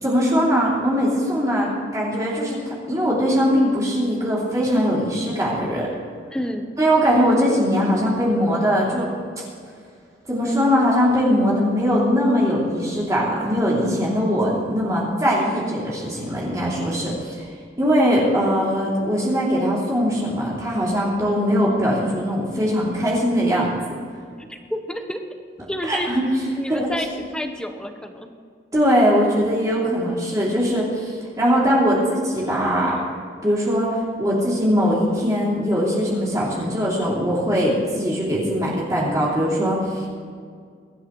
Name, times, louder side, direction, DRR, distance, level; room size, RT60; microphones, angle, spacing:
voice 1, 0.0-5.9 6.8-9.1 10.3-17.4 17.8-23.7 25.8-26.2 26.7-26.9 28.7-33.0 33.4-40.1, equal, 20° right, -6 dB, 3.0 m, -21 dB
voice 2, 6.3-6.7 24.4-25.2 25.7-26.1 26.6-28.3, equal, 5° left, 5 dB, 1.0 m, -29 dB
22.5 x 13.0 x 3.2 m, 2.1 s
head